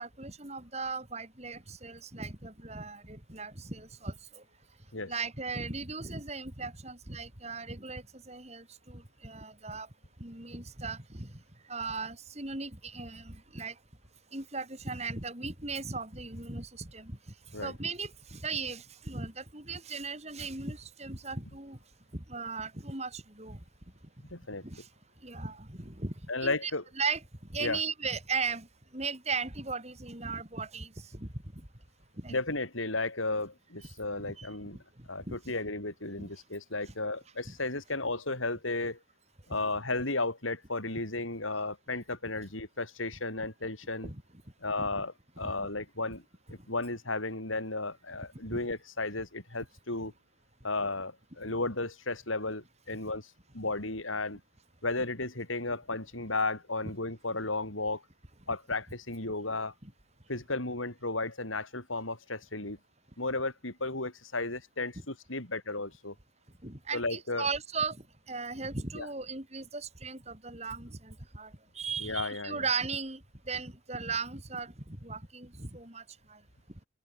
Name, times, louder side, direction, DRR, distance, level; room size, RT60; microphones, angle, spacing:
voice 1, 0.0-4.1 5.1-9.9 10.2-11.3 11.7-13.7 14.3-17.1 17.6-21.8 22.3-23.6 24.6-24.8 25.2-26.1 26.4-26.7 27.0-27.2 27.5-28.7 28.9-31.3 32.2-32.3 34.2-34.5 35.3-35.4 37.5-37.6 44.1-44.2 45.4-45.5 48.5-48.6 66.6-68.0 68.3-71.5 71.8-73.2 73.5-76.0, right 4 dB, 35° right, 3.9 m, -37 dB
voice 2, 24.3-24.8 26.3-26.8 27.6-27.8 32.3-34.8 35.1-39.0 39.5-44.1 44.6-46.2 46.5-50.1 50.6-54.4 54.8-58.0 58.5-59.7 60.3-62.8 63.2-66.1 66.9-67.5 68.9-69.1 72.0-72.7, left 2 dB, 85° left, 7.7 m, -34 dB
open air
head